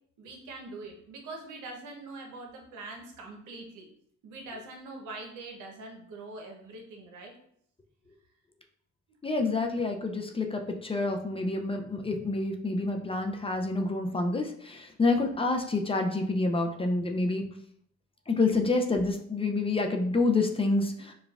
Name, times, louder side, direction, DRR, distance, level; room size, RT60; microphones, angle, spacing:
voice 1, 0.2-3.9 4.2-7.3, right 2 dB, 90° right, 2 dB, 0.8 m, -43 dB
voice 2, 9.2-17.5 18.3-21.1, left 3 dB, 20° left, 3 dB, 0.4 m, -28 dB
5.0 x 2.3 x 2.3 m, 0.66 s
cardioid pair, 90°, 30 cm